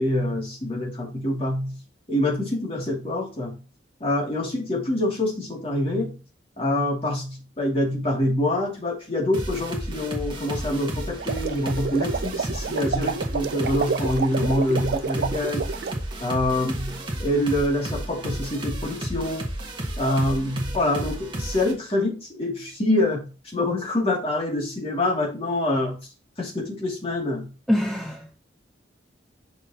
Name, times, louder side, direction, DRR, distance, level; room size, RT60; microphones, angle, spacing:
voice 1, 0.0-1.7 2.1-3.6 4.0-6.2 6.6-15.7 16.2-19.5 20.0-26.0 26.4-27.5, left 1 dB, 30° left, 2.4 m, -25 dB
sound 1, 9.3-21.7, right 1 dB, 25° right, 1.4 m, -32 dB
sound 2, 11.1-16.0, right 5 dB, 55° right, 0.4 m, -29 dB
voice 2, 27.7-28.3, left 1 dB, ahead, 0.7 m, -24 dB
6.6 x 5.4 x 2.8 m
head